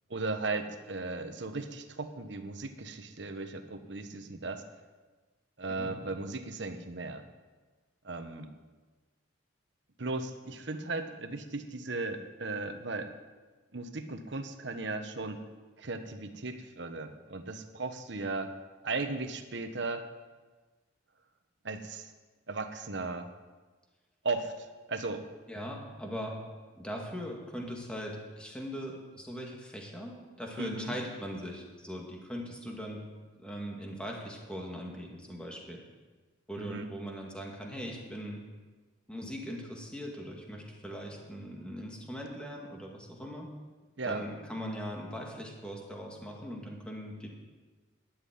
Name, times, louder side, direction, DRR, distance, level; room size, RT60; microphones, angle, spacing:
voice 1, 0.1-4.6 5.6-7.2 8.0-8.5 10.0-13.1 13.7-15.4 15.8-18.5 18.8-20.1 21.6-22.1 22.5-23.3 24.2-25.2 30.6-30.9 36.6-36.9 44.0-44.2, right 3 dB, 60° right, 7 dB, 1.1 m, -36 dB
voice 2, 25.5-26.4 26.8-33.1 33.3-35.8 36.5-38.4 39.1-43.5 44.0-47.3, equal, 5° left, -1 dB, 2.1 m, -40 dB
12.5 x 7.5 x 9.5 m, 1.3 s
head